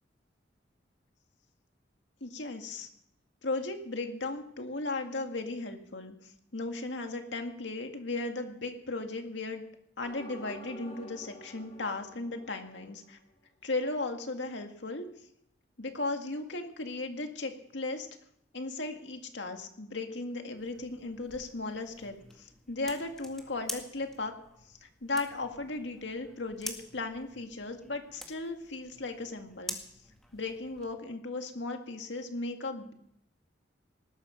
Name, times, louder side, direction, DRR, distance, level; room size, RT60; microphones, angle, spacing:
voice 1, 2.2-2.9 3.4-9.6 10.0-13.2 13.6-15.1 15.8-18.1 18.5-24.3 24.7-29.8 30.3-32.9, left 2 dB, 80° left, 5 dB, 2.0 m, -36 dB
sound 1, 10.0-13.3, equal, 40° left, 4.3 m, -49 dB
sound 2, 20.6-30.9, left 1 dB, 5° left, 1.9 m, -47 dB
19.0 x 13.0 x 5.2 m, 0.72 s
head